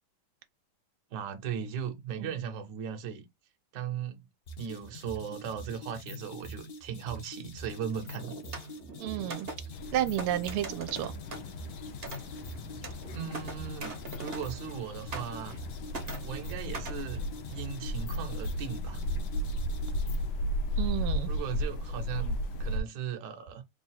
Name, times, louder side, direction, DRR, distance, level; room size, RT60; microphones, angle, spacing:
voice 1, 1.1-3.3 3.7-4.3 4.6-8.4 13.1-15.6 16.2-19.0 21.3-23.6, right 7 dB, 60° right, 1.3 m, -38 dB
sound 1, 4.5-20.3, equal, 55° left, 1.2 m, -44 dB
sound 2, 7.9-14.8 15.1-15.7 15.9-17.0, right 3 dB, 40° right, 0.8 m, -43 dB
voice 2, 9.0-9.5 9.9-11.1 20.8-21.3, right 13 dB, 90° right, 1.5 m, -31 dB
sound 3, 9.7-22.8, equal, 75° left, 1.3 m, -35 dB
3.7 x 2.3 x 4.2 m
omnidirectional pair, 2.4 m